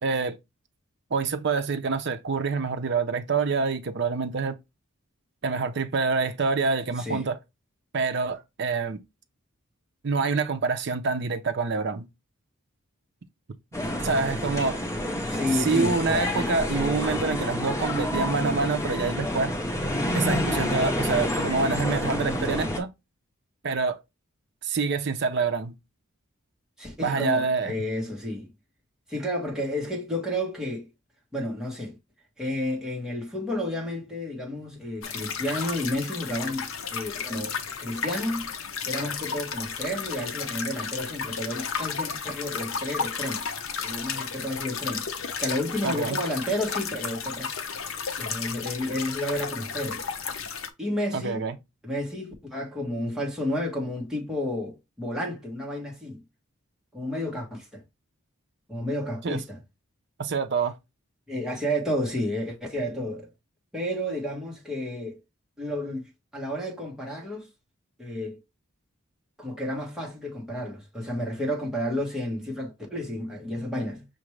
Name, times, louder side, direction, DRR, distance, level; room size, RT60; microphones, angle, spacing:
voice 1, 0.0-0.4 1.1-4.6 5.4-7.4 7.9-9.0 10.0-12.1 14.0-14.8 15.5-19.6 20.1-22.9 23.6-24.0 24.6-25.8 27.0-27.7 45.8-46.2 51.1-51.6 59.2-59.4 60.2-60.7, right 4 dB, 50° right, 0.5 m, -26 dB
voice 2, 7.0-7.3 15.2-16.0 26.8-28.5 29.1-30.9 31.3-32.0 32.4-38.5 38.8-43.4 43.8-45.1 45.4-47.5 48.2-50.0 50.8-51.4 51.8-56.2 56.9-57.8 58.7-59.6 61.3-63.3 63.7-65.2 65.6-67.5 68.0-68.4 69.4-74.1, left 1 dB, 5° right, 1.2 m, -31 dB
sound 1, 13.7-22.8, left 1 dB, 15° left, 0.6 m, -28 dB
sound 2, 35.0-50.7, left 6 dB, 65° left, 0.6 m, -33 dB
5.9 x 2.5 x 3.2 m
head